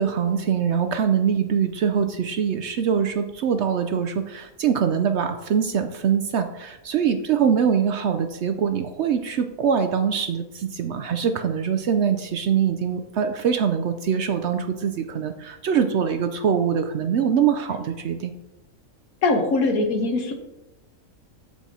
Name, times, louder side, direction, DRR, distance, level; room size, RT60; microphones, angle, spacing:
voice 1, 0.0-18.3, right 7 dB, 65° right, 7 dB, 0.7 m, -23 dB
voice 2, 19.2-20.3, left 3 dB, 80° left, 4 dB, 1.5 m, -21 dB
14.0 x 4.8 x 2.7 m, 0.97 s
omnidirectional pair, 1.5 m